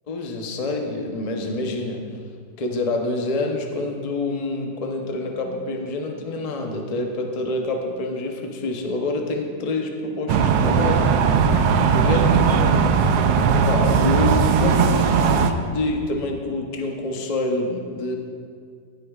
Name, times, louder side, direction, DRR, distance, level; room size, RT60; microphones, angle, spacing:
voice 1, 0.1-2.2 2.6-11.0 11.9-12.9 13.6-18.2, left 2 dB, 45° left, 2 dB, 0.4 m, -27 dB
sound 1, 10.3-15.5, right 6 dB, 85° right, 1.3 m, -18 dB
17.0 x 8.1 x 2.4 m, 2.2 s
omnidirectional pair, 1.9 m